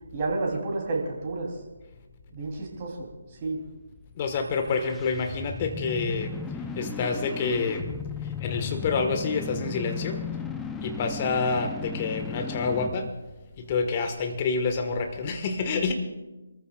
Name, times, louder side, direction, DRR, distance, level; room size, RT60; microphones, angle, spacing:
voice 1, 0.1-1.5 2.3-3.1 3.4-3.6, right 3 dB, 35° right, -1 dB, 3.6 m, -30 dB
voice 2, 4.2-6.3 6.7-7.9 8.2-10.2 10.8-13.1 13.6-15.9, left 4 dB, 30° left, 5 dB, 1.6 m, -28 dB
sound 1, 4.5-13.1, left 5 dB, 5° left, 0.7 m, -36 dB
26.0 x 14.5 x 2.5 m, 1.1 s
figure-of-eight pair, 145°, 0 cm